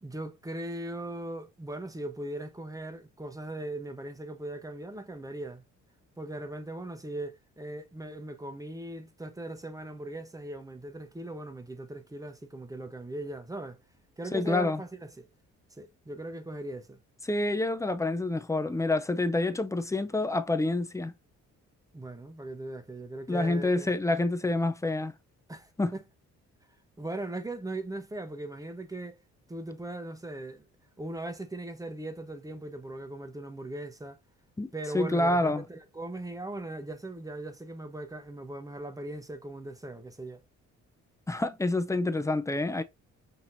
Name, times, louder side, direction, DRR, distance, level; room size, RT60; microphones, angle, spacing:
voice 1, 0.0-5.6 6.2-13.8 14.2-15.3 15.8-17.0 21.9-23.9 25.5-26.0 27.0-29.2 29.5-30.7 31.0-34.2 34.7-40.4, right 1 dB, 10° right, 0.9 m, -39 dB
voice 2, 14.3-14.8 17.3-21.1 23.3-25.1 25.8-25.9 34.6-35.6 41.3-42.8, left 2 dB, 10° left, 0.5 m, -27 dB
5.9 x 2.9 x 2.6 m
cardioid pair, 90°, 30 cm